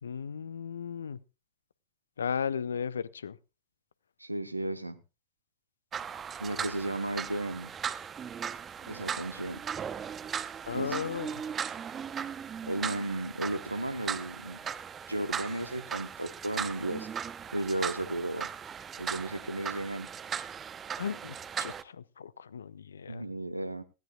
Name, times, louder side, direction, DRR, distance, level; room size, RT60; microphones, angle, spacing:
voice 1, 0.0-1.2 2.2-3.4 6.6-6.7 10.6-11.4 21.0-23.3, left 7 dB, 70° left, 0.6 m, -36 dB
voice 2, 4.2-5.0 6.4-7.7 8.9-9.6 10.7-10.9 12.6-14.6 15.1-17.1 17.5-18.5 19.0-20.1 23.1-23.8, right 1 dB, 85° right, 1.1 m, -34 dB
sound 1, 5.9-21.8, right 7 dB, 25° right, 0.8 m, -38 dB
18.5 x 16.0 x 2.4 m
figure-of-eight pair, 90°, 0 cm